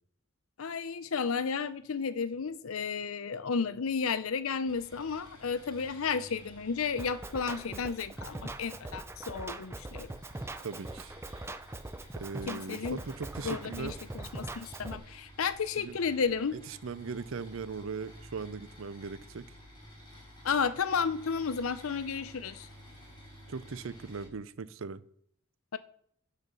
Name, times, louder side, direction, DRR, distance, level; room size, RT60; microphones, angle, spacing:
voice 1, 0.6-10.1 12.5-13.0 13.4-16.6 20.4-22.7 25.7-25.8, left 5 dB, 90° left, 0.6 m, -32 dB
sound 1, 4.7-24.3, equal, 25° left, 3.8 m, -53 dB
Drum kit, 7.0-15.0, right 2 dB, 10° right, 0.5 m, -42 dB
voice 2, 10.6-11.1 12.1-14.0 15.8-16.0 16.7-19.5 23.5-25.0, right 4 dB, 70° right, 0.6 m, -39 dB
10.5 x 4.2 x 6.2 m
head